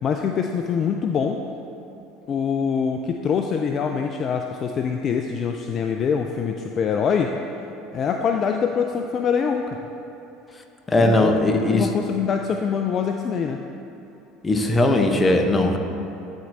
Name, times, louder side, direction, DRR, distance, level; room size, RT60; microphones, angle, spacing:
voice 1, 0.0-1.4 2.3-7.3 7.9-9.8 11.0-13.6, left 6 dB, 45° left, 4 dB, 0.3 m, -24 dB
voice 2, 10.9-11.9 14.4-15.8, left 2 dB, 20° left, 4 dB, 0.7 m, -19 dB
11.5 x 4.4 x 2.7 m, 2.9 s
hypercardioid pair, 75°, 0 cm